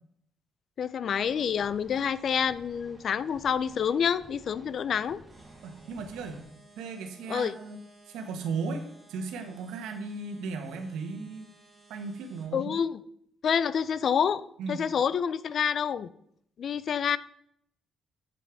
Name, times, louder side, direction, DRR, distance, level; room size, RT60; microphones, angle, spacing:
voice 1, 0.8-5.2 7.3-7.5 12.5-13.0 13.4-16.1 16.6-17.2, left 7 dB, 55° left, 17 dB, 0.4 m, -28 dB
sound 1, 1.2-6.4, right 1 dB, 15° right, 2.0 m, -53 dB
sound 2, 5.3-12.5, right 2 dB, 35° right, 2.9 m, -58 dB
voice 2, 5.6-6.4 6.8-7.8 8.1-8.8 9.1-11.5 11.9-12.8 14.6-14.8, right 4 dB, 90° right, 6 dB, 1.3 m, -36 dB
7.6 x 4.9 x 5.9 m, 0.68 s
cardioid pair, 95°, 0 cm